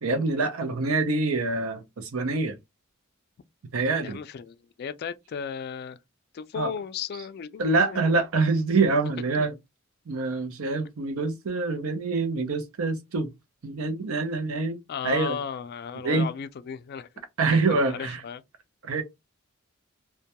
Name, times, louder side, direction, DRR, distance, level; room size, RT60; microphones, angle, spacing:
voice 1, 0.0-2.6 3.7-4.2 6.5-6.7 7.2-7.3 7.6-9.6 10.1-13.3 13.6-15.4 16.0-16.3 17.4-18.2 18.8-19.0, right 3 dB, 90° right, 0.6 m, -26 dB
voice 2, 4.0-6.0 6.3-8.0 9.4-9.5 14.9-17.1 17.5-18.4, left 7 dB, 50° left, 0.3 m, -35 dB
2.2 x 2.2 x 2.8 m
head